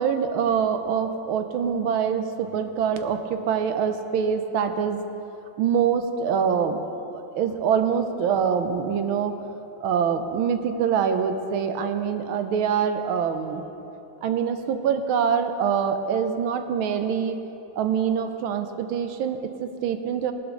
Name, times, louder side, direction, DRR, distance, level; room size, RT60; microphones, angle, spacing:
voice 1, 0.0-5.0 5.6-6.8 7.1-9.3 9.8-13.6 14.2-17.4 17.7-20.3, right 7 dB, 90° right, 7 dB, 1.6 m, -24 dB
18.5 x 12.0 x 3.8 m, 2.9 s
omnidirectional pair, 2.2 m